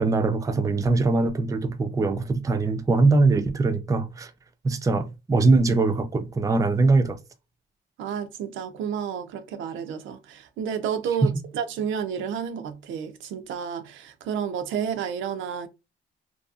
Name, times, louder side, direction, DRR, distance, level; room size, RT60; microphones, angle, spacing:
voice 1, 0.0-4.3 4.6-7.2 11.2-11.3, right 3 dB, 15° right, 0.4 m, -22 dB
voice 2, 8.0-15.7, right 8 dB, 75° right, 0.5 m, -31 dB
2.7 x 2.3 x 2.3 m
cardioid pair, 90°, 20 cm